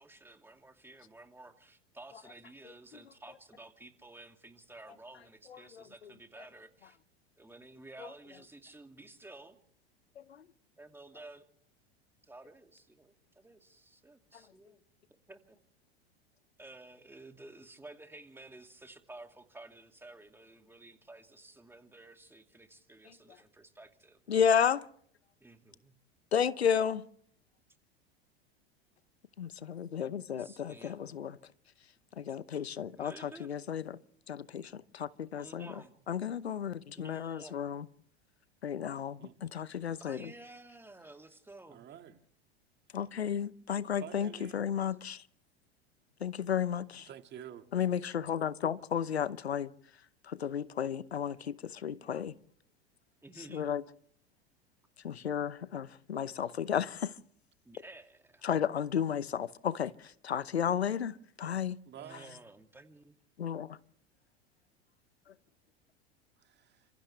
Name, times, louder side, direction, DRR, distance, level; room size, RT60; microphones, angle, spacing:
voice 1, 0.0-7.0 7.4-9.6 10.8-11.4 12.2-14.8 15.3-15.6 16.6-24.6 25.4-25.9 30.4-31.4 32.9-33.6 35.3-36.0 36.9-37.7 40.0-41.9 53.2-53.6 57.6-58.5 62.0-63.1, right 2 dB, 5° right, 2.5 m, -53 dB
voice 2, 5.5-5.8 10.2-10.4 24.3-24.8 26.3-27.0 29.4-31.4 32.2-34.0 34.3-35.7 36.1-37.8 38.6-40.3 42.9-45.2 46.2-47.1 47.7-49.7 50.3-52.3 53.5-53.8 55.0-57.1 58.4-61.8 63.4-63.8, left 8 dB, 85° left, 0.9 m, -33 dB
voice 3, 41.7-42.2 44.0-44.6 47.1-47.7 61.4-61.5 61.9-62.4 66.4-66.9, right 10 dB, 35° right, 2.1 m, -49 dB
29.5 x 26.0 x 3.4 m
hypercardioid pair, 85°, 31 cm